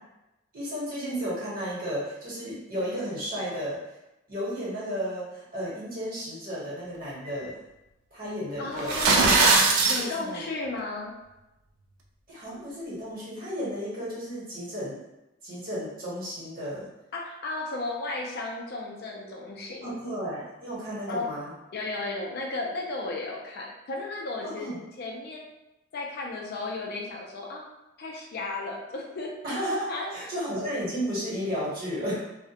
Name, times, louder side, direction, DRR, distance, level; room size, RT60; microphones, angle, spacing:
voice 1, 0.5-3.8 4.3-7.6 8.1-9.0 10.0-10.4 12.3-15.0 15.4-16.9 19.8-21.5 24.5-24.8 29.4-32.2, equal, 45° right, -8 dB, 1.0 m, -33 dB
voice 2, 8.6-9.3 9.9-11.1 17.1-20.0 21.1-21.3 21.7-25.5 25.9-27.6 28.0-29.3 29.9-30.3, left 2 dB, 50° left, -1 dB, 0.4 m, -34 dB
sound 1, 8.8-10.0, right 3 dB, 85° right, 0.4 m, -20 dB
2.3 x 2.0 x 2.8 m, 0.96 s
head